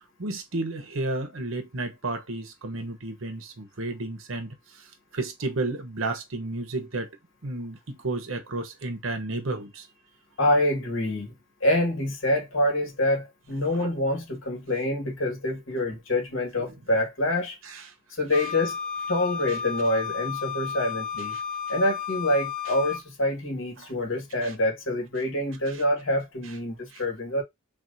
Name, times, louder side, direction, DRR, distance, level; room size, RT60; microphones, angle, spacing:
voice 1, 0.2-4.6 5.1-7.1 7.4-9.9 13.7-13.9 17.7-17.8 23.8-23.9 24.4-24.5 26.9-27.0, right 2 dB, 85° right, 1.0 m, -32 dB
voice 2, 10.4-11.3 11.6-17.6 18.2-18.8 19.1-21.3 21.7-27.4, left 1 dB, 75° left, 1.7 m, -26 dB
Wind instrument woodwind instrument, 18.3-23.0, left 7 dB, 40° left, 0.6 m, -33 dB
5.9 x 2.5 x 2.7 m
head